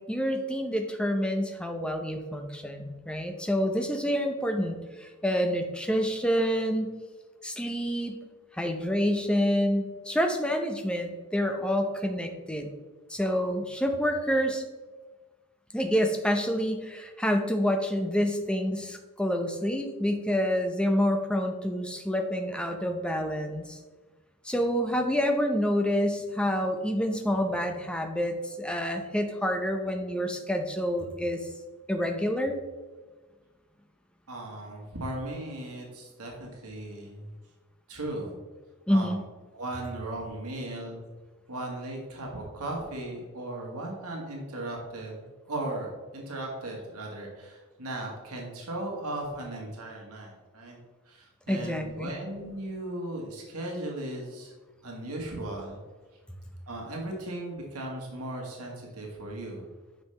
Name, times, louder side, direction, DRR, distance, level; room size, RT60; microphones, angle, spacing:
voice 1, 0.0-6.9 7.4-8.2 8.5-12.7 13.1-14.6 15.7-23.8 24.4-31.4 31.9-32.6 38.9-39.2 51.5-52.1, equal, 5° left, 4 dB, 0.6 m, -28 dB
voice 2, 34.3-37.3 37.9-38.4 38.9-39.2 39.5-41.0 41.5-50.8 51.1-54.5 54.8-55.8 56.7-59.6, right 1 dB, 80° right, -1 dB, 1.7 m, -37 dB
9.2 x 5.5 x 3.3 m, 1.3 s
head